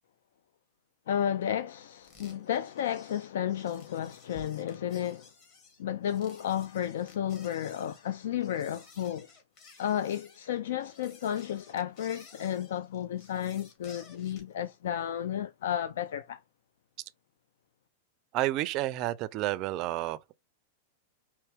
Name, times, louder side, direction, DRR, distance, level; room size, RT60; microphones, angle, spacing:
voice 1, 1.1-5.3 5.8-9.3 9.8-16.4, left 10 dB, 80° left, 0.3 m, -32 dB
sound 1, 2.0-14.5, left 4 dB, 40° left, 1.6 m, -55 dB
voice 2, 18.3-20.4, right 15 dB, 35° right, 0.4 m, -30 dB
4.6 x 3.0 x 3.3 m
supercardioid pair, 155°, 0 cm